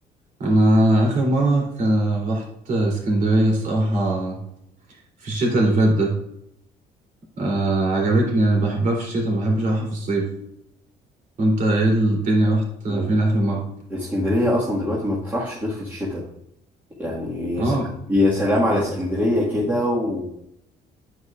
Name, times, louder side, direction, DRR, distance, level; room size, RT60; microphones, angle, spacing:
voice 1, 0.4-4.4 5.2-6.1 7.4-10.3 11.4-13.6 17.6-17.9, right 1 dB, 50° right, -2 dB, 3.2 m, -20 dB
voice 2, 13.9-16.2 17.0-17.8 18.1-20.3, left 1 dB, 10° right, -7 dB, 1.8 m, -23 dB
9.3 x 8.2 x 2.4 m, 0.79 s
cardioid pair, 110°, 17 cm